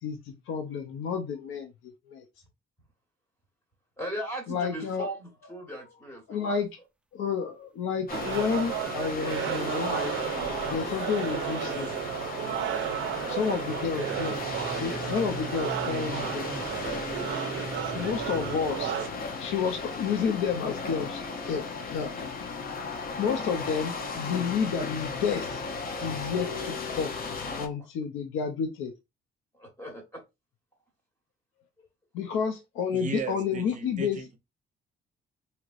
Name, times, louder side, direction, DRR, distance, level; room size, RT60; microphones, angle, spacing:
voice 1, 0.0-1.7 2.1-2.2 4.5-5.1 6.3-6.7 7.1-10.2 10.7-11.9 13.3-14.4 14.7-16.7 17.9-19.0 19.4-21.2 21.5-22.1 22.4-22.5 23.2-25.6 26.0-27.1 27.6-28.9 32.1-34.2, left 6 dB, 85° left, 0.6 m, -30 dB
voice 2, 4.0-6.6 27.2-27.6 29.5-30.2 31.8-31.9, right 1 dB, 15° left, 1.3 m, -38 dB
sound 1, 8.0-8.9 9.2-10.0 10.3-10.4 12.9-18.7 21.6-21.7, right 1 dB, 5° right, 0.3 m, -42 dB
sound 2, 8.1-27.7, left 4 dB, 50° left, 0.7 m, -36 dB
sound 3, 8.1-19.1, right 11 dB, 75° right, 0.4 m, -33 dB
voice 3, 32.9-34.4, right 5 dB, 40° right, 0.7 m, -37 dB
3.1 x 2.8 x 2.4 m
cardioid pair, 90°, 20 cm